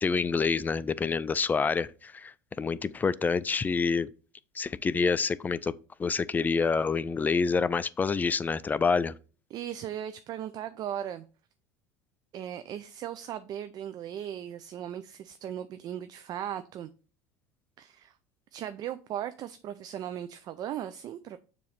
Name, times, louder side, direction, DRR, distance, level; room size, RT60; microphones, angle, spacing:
voice 1, 0.0-4.1 4.5-5.7 6.0-9.1, left 5 dB, 20° left, 0.3 m, -27 dB
voice 2, 9.5-11.3 12.3-16.9 17.8-18.2 18.5-21.4, right 10 dB, 45° right, 0.4 m, -37 dB
6.9 x 3.1 x 5.0 m
supercardioid pair, 105°, 9 cm